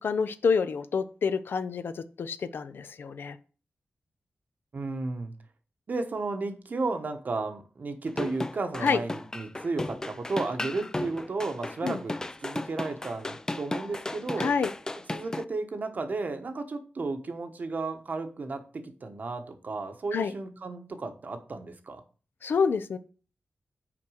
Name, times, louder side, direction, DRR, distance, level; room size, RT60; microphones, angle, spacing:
voice 1, 0.0-3.4 8.8-9.0 11.8-12.0 14.4-14.7 20.1-20.3 22.4-23.0, left 5 dB, 75° left, 12 dB, 0.6 m, -27 dB
voice 2, 4.7-5.3 5.9-12.2 12.4-14.5 15.1-22.0, right 3 dB, 50° right, 7 dB, 1.1 m, -33 dB
sound 1, 8.1-15.4, left 2 dB, 15° left, 0.4 m, -35 dB
6.0 x 4.5 x 6.3 m, 0.38 s
wide cardioid pair, 100°, 4 cm